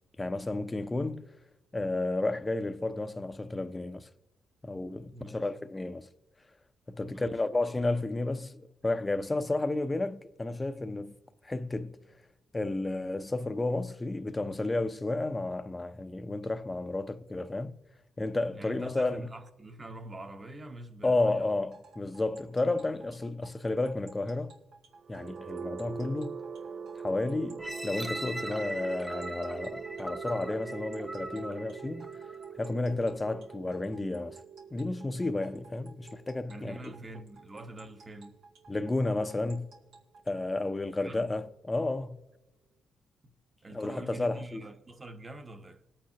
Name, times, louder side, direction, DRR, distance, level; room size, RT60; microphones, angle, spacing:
voice 1, 0.2-1.3 1.7-4.1 4.6-6.1 6.9-11.1 11.4-12.0 12.5-17.7 18.2-19.3 21.0-24.5 25.1-26.4 27.0-32.1 32.6-34.4 34.7-36.9 38.7-39.7 40.3-42.2 43.7-44.6, left 2 dB, 20° left, 0.7 m, -32 dB
voice 2, 5.1-5.6 7.0-7.4 18.5-21.5 36.5-38.4 41.0-41.3 43.2-43.3 43.6-45.8, right 2 dB, 30° right, 1.1 m, -45 dB
sound 1, 21.7-40.5, right 4 dB, 80° right, 1.9 m, -55 dB
sound 2, 25.0-38.9, right 6 dB, 50° right, 0.3 m, -43 dB
sound 3, 27.6-32.5 33.1-33.2, right 1 dB, 5° right, 0.9 m, -40 dB
21.0 x 8.8 x 2.9 m
cardioid pair, 85°, 0 cm